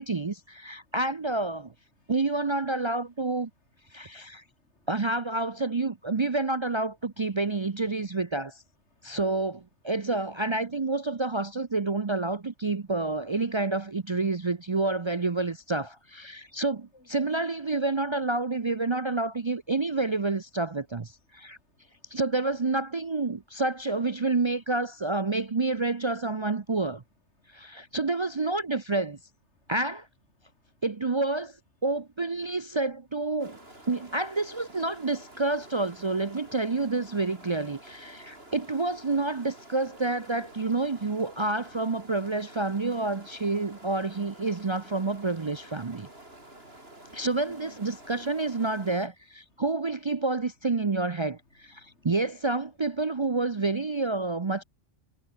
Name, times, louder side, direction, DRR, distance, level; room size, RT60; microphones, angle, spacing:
voice 1, 0.0-1.7 2.1-3.5 3.9-4.4 4.9-8.6 9.0-21.6 22.1-27.0 27.5-29.2 29.7-30.1 30.8-31.6 31.8-33.6 33.9-46.1 47.1-54.6, right 3 dB, 30° right, 0.6 m, -29 dB
voice 2, 21.7-22.2 29.6-29.7 38.3-38.5 46.3-47.2 47.5-47.8 51.8-52.1, left 2 dB, 75° left, 4.7 m, -59 dB
sound 1, 33.4-49.1, right 1 dB, 60° right, 7.0 m, -50 dB
omnidirectional pair, 1.2 m